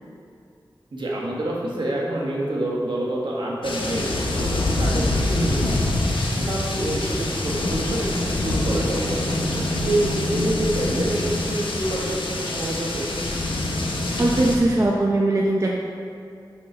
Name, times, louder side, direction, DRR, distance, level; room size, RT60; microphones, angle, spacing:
voice 1, 0.9-5.8 6.4-9.3 9.8-13.0, right 1 dB, 70° right, -4 dB, 1.4 m, -27 dB
sound 1, 3.6-14.6, left 2 dB, 85° left, 0.8 m, -25 dB
voice 2, 14.2-15.7, right 2 dB, 35° right, -2 dB, 0.6 m, -20 dB
6.3 x 5.8 x 4.3 m, 2.4 s
wide cardioid pair, 85°, 8 cm